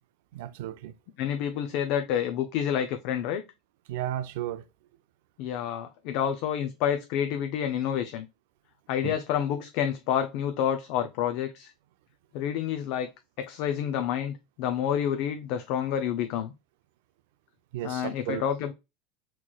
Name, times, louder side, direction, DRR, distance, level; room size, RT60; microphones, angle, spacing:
voice 1, 0.3-0.9 3.9-4.6 9.0-9.1 17.7-18.4, right 12 dB, 75° right, 0.4 m, -34 dB
voice 2, 1.2-3.4 5.4-8.3 8.9-11.7 12.3-13.1 13.4-16.5 17.8-18.7, left 9 dB, 55° left, 0.4 m, -29 dB
4.3 x 3.0 x 2.2 m
supercardioid pair, 155°, 0 cm